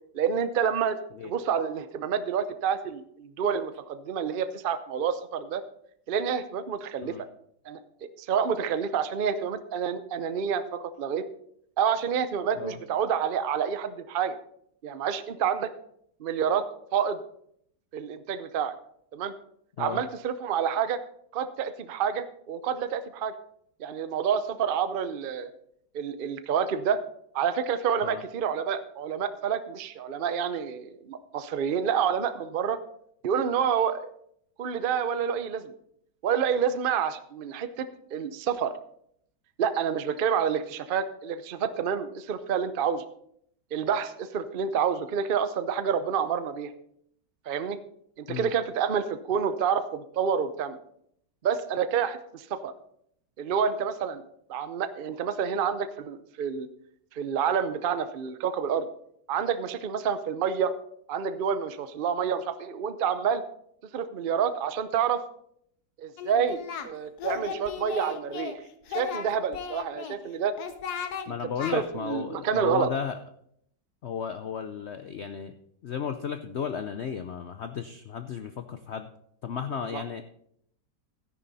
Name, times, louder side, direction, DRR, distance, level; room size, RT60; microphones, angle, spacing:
voice 1, 0.1-1.0 1.2-5.6 6.1-7.2 7.7-11.3 11.8-14.4 14.8-15.7 16.2-16.6 16.9-17.2 17.9-18.7 19.1-19.3 19.8-21.0 21.3-23.3 23.8-25.5 25.9-27.0 27.3-32.8 33.2-34.1 34.6-35.7 36.2-38.7 39.6-43.0 43.7-46.7 47.5-47.8 48.2-50.8 51.4-52.7 53.4-54.2 54.5-56.7 57.1-58.9 59.3-60.7 61.1-63.4 63.9-65.2 66.0-68.5 68.9-70.5 71.3-71.4 71.7-72.9 79.9-80.0, right 7 dB, 80° right, 11 dB, 0.4 m, -28 dB
Singing, 66.2-66.9 67.2-68.6 68.9-70.2 70.6-71.3 71.6-71.8, left 7 dB, 65° left, 1.4 m, -35 dB
voice 2, 71.3-73.2 74.0-75.6 75.8-79.1 79.4-80.2, left 7 dB, 80° left, 8 dB, 0.6 m, -34 dB
13.0 x 10.0 x 4.1 m, 0.70 s
omnidirectional pair, 1.9 m